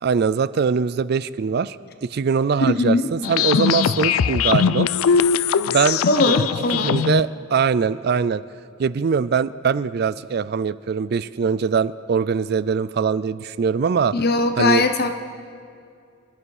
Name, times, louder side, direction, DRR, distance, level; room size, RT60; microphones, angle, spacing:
voice 1, 0.0-1.8 2.0-4.9 5.7-6.5 6.7-8.4 8.8-14.2 14.6-14.8, right 6 dB, 50° right, 17 dB, 0.3 m, -22 dB
voice 2, 2.7-3.1 6.1-6.9 14.1-15.2, left 2 dB, 50° left, 7 dB, 1.1 m, -20 dB
sound 1, 3.2-7.2, left 7 dB, 85° left, 0.4 m, -20 dB
26.0 x 11.0 x 4.9 m, 2.4 s
head